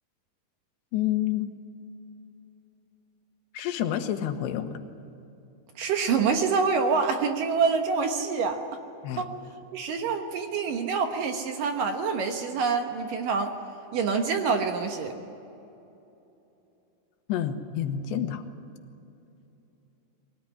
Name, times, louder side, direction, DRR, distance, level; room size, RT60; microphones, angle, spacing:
voice 1, 0.9-1.5 3.5-4.8 9.0-9.2 17.3-18.4, left 11 dB, 90° left, 7 dB, 3.4 m, -28 dB
voice 2, 5.8-8.6 9.2-9.3 9.7-13.5 13.9-15.1, right 5 dB, 65° right, 5 dB, 2.5 m, -26 dB
22.5 x 18.0 x 9.9 m, 2.9 s
omnidirectional pair, 4.9 m